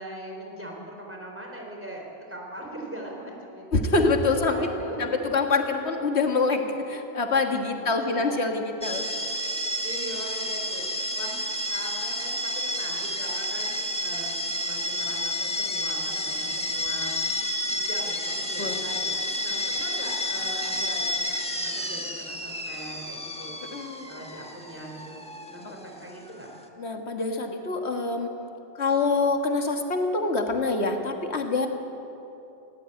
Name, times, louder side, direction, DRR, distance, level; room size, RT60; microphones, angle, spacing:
voice 1, 0.0-3.8 4.3-5.5 7.8-8.5 9.1-9.2 9.6-11.4 11.7-17.2 17.7-23.6 24.1-26.5, right 1 dB, 10° right, -1 dB, 3.8 m, -41 dB
voice 2, 3.7-4.7 5.0-9.1 18.6-18.8 23.7-24.1 25.6-25.7 26.8-28.3 28.8-31.7, left 3 dB, 90° left, 4 dB, 1.9 m, -25 dB
sound 1, 8.8-26.7, left 1 dB, 5° left, 1.5 m, -30 dB
19.5 x 16.5 x 8.9 m, 2.9 s
omnidirectional pair, 1.1 m